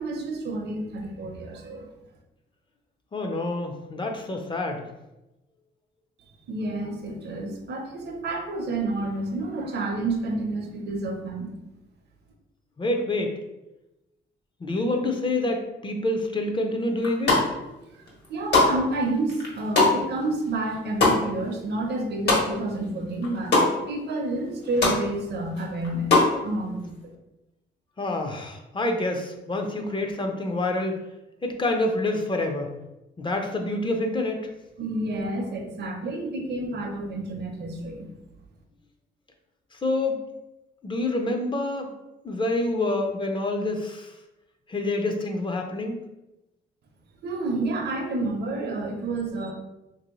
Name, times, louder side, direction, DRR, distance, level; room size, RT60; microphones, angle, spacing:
voice 1, 0.0-1.9 6.5-11.5 18.3-26.1 26.4-27.0 34.8-38.1 47.2-49.5, right 2 dB, 55° right, 2 dB, 0.7 m, -29 dB
voice 2, 3.1-4.8 12.8-13.3 14.6-17.4 28.0-31.0 31.4-32.7 33.2-34.4 39.7-40.2 40.8-41.9 42.2-44.1 44.7-46.0, left 2 dB, 25° left, 3 dB, 0.5 m, -27 dB
sound 1, 17.0-17.7 18.1-22.8 23.1-23.7 24.1-24.2 24.4-25.0 25.4-26.3, left 3 dB, 60° left, 1.2 m, -22 dB
2.9 x 2.6 x 3.0 m, 0.96 s
cardioid pair, 90°, 20 cm